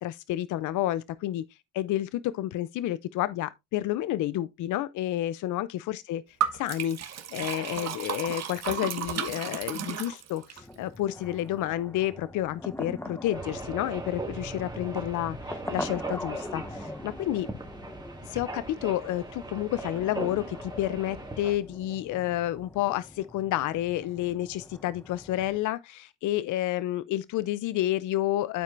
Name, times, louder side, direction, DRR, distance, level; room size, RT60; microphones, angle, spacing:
voice 1, 0.0-1.4 1.7-6.2 6.5-17.5 18.2-28.6, left 14 dB, 80° left, 0.5 m, -30 dB
Liquid, 6.4-10.6, right 9 dB, 60° right, 1.2 m, -33 dB
sound 1, 10.6-25.6, left 1 dB, 10° left, 1.1 m, -42 dB
sound 2, 13.3-21.6, right 2 dB, 15° right, 2.0 m, -39 dB
12.5 x 4.4 x 2.5 m
cardioid pair, 90°, 30 cm